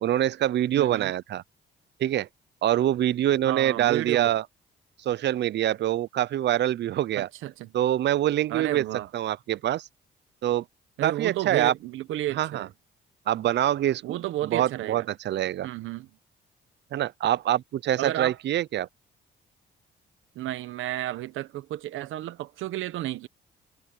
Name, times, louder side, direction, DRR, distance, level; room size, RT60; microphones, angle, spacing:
voice 1, 0.0-1.4 2.0-2.3 2.6-4.4 5.0-7.3 7.7-8.8 9.1-9.9 10.4-10.6 11.0-11.7 12.3-12.7 13.3-14.2 14.4-15.7 16.9-18.9, right 12 dB, 60° right, 0.6 m, -25 dB
voice 2, 0.7-1.1 3.5-4.3 7.2-7.7 8.5-9.1 11.0-12.7 14.0-15.0 15.6-16.1 18.0-18.4 20.3-23.3, right 14 dB, 85° right, 1.0 m, -32 dB
cardioid pair, 90°, 20 cm